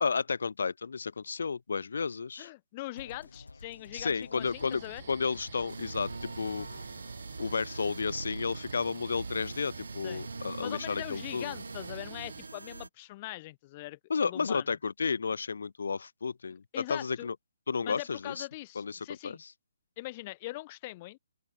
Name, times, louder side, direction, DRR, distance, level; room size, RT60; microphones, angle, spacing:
voice 1, 0.0-2.5 3.9-4.8 5.1-6.7 7.4-11.5 14.1-17.3 17.7-18.4 18.8-19.5, left 5 dB, 70° left, 1.0 m, -32 dB
voice 2, 2.4-5.0 10.0-10.3 10.6-14.7 16.7-17.3 17.8-19.4 20.0-21.2, left 19 dB, 30° left, 4.6 m, -42 dB
sound 1, 3.0-8.9, left 3 dB, 85° left, 7.8 m, -51 dB
sound 2, 4.4-12.5, right 9 dB, 45° right, 2.4 m, -50 dB
sound 3, 5.7-12.9, right 3 dB, 85° right, 7.0 m, -42 dB
open air
figure-of-eight pair, 145°, 0 cm